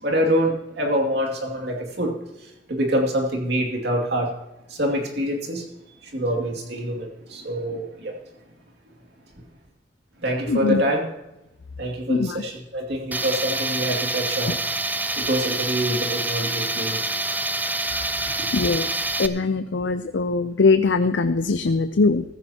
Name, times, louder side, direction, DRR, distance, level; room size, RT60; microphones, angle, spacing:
voice 1, 0.0-2.1 2.7-4.3 4.7-5.6 6.1-8.1 10.2-11.0 11.8-14.5 15.2-18.4, equal, 65° right, 0 dB, 2.5 m, -26 dB
voice 2, 10.5-10.8 12.1-12.4 14.5-14.6 18.5-18.9 19.2-22.2, left 3 dB, 75° left, 10 dB, 0.6 m, -21 dB
Tools, 13.1-19.3, right 2 dB, 10° right, 0.6 m, -26 dB
15.0 x 14.5 x 2.9 m, 0.94 s
head